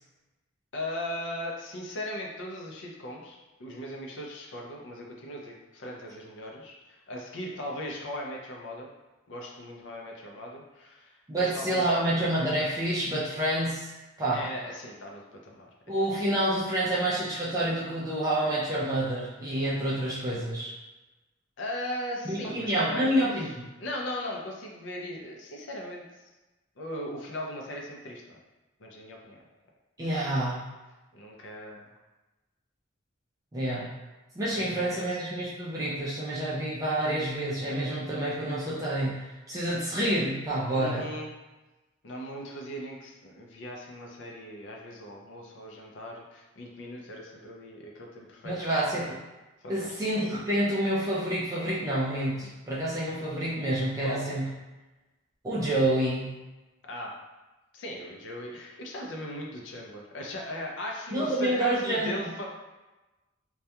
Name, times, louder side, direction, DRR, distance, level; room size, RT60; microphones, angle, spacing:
voice 1, 0.7-8.9 9.3-11.1 11.4-12.0 14.3-16.0 21.6-23.5 23.8-26.2 26.8-28.4 28.8-29.4 31.1-31.9 34.5-35.2 40.7-41.3 42.0-48.6 49.6-50.0 54.0-54.3 56.8-57.2 57.7-62.5, left 1 dB, 65° left, -1 dB, 0.5 m, -38 dB
voice 2, 11.3-13.9 14.2-14.5 15.9-20.7 22.3-23.6 30.0-30.7 33.5-33.9 34.4-41.1 48.4-49.2 49.7-54.5 55.4-56.4 61.1-62.3, right 1 dB, 15° right, -7 dB, 0.3 m, -28 dB
2.2 x 2.2 x 2.8 m, 1.1 s
head